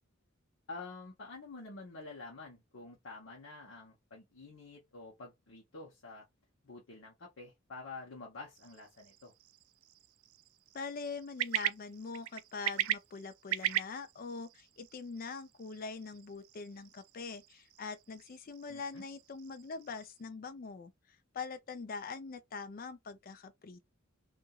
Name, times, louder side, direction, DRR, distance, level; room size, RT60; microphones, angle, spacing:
voice 1, 0.7-6.3 6.6-9.3 18.7-19.0, left 3 dB, 70° left, 0.9 m, -48 dB
sound 1, 8.6-20.2, right 12 dB, 90° right, 0.3 m, -41 dB
voice 2, 10.7-20.9 21.3-23.9, left 4 dB, 45° left, 0.4 m, -43 dB
2.8 x 2.5 x 2.3 m
head